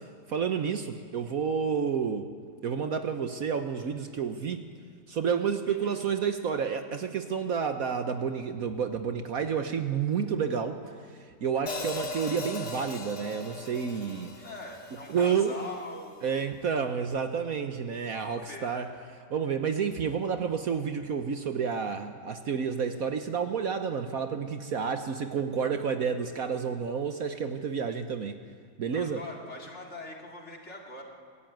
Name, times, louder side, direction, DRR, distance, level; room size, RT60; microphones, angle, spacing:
voice 1, 0.3-2.3 2.6-4.6 5.1-10.8 11.4-14.3 15.1-15.5 16.2-18.9 19.3-28.3 28.8-29.2, right 6 dB, 60° right, 7 dB, 1.3 m, -30 dB
voice 2, 5.7-6.0 11.8-12.1 14.4-16.4 18.1-18.9 28.9-31.0, left 2 dB, 40° left, 0 dB, 3.0 m, -43 dB
Hi-hat, 11.7-15.8, left 2 dB, 70° left, 2.5 m, -39 dB
23.5 x 14.5 x 9.2 m, 2.1 s
omnidirectional pair, 1.9 m